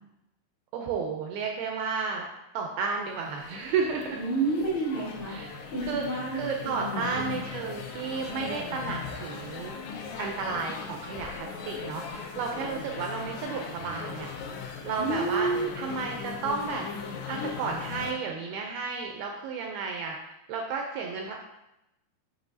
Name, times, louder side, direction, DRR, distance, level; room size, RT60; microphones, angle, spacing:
voice 1, 0.7-2.3 2.5-4.2 5.3-5.5 5.8-9.7 10.2-14.3 14.8-15.5 15.8-16.9 17.3-20.2 20.5-21.5, right 5 dB, 85° right, 1 dB, 2.2 m, -32 dB
sound 1, 2.8-18.1, left 5 dB, 85° left, 3.1 m, -39 dB
voice 2, 4.1-5.3 5.7-7.4 15.0-15.7, right 3 dB, 65° left, -8 dB, 1.2 m, -30 dB
8.2 x 5.3 x 2.7 m, 0.90 s
omnidirectional pair, 4.9 m